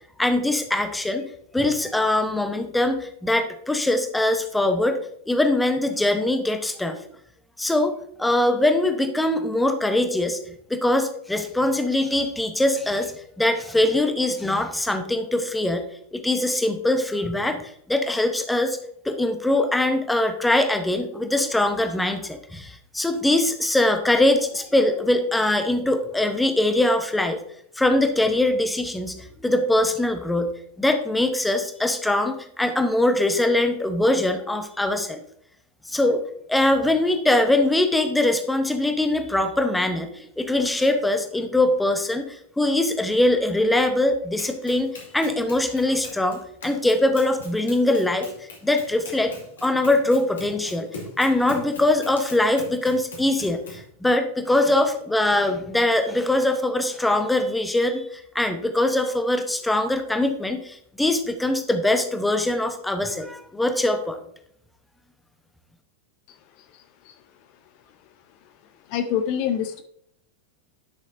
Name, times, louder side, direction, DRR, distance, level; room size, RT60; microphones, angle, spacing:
voice 1, 0.2-1.2 1.5-5.0 5.3-7.0 7.6-10.4 10.7-13.1 13.4-15.9 16.1-27.4 27.8-35.2 35.9-36.2 36.5-48.3 48.6-49.3 49.6-50.9 51.2-64.2, left 1 dB, 5° left, 7 dB, 0.9 m, -22 dB
Run, 44.4-53.9, left 3 dB, 65° left, 2.4 m, -42 dB
voice 2, 66.3-67.2 68.4-68.5 68.8-69.8, left 9 dB, 45° left, 9 dB, 0.6 m, -28 dB
11.5 x 6.4 x 2.7 m, 0.69 s
figure-of-eight pair, 90°, 0 cm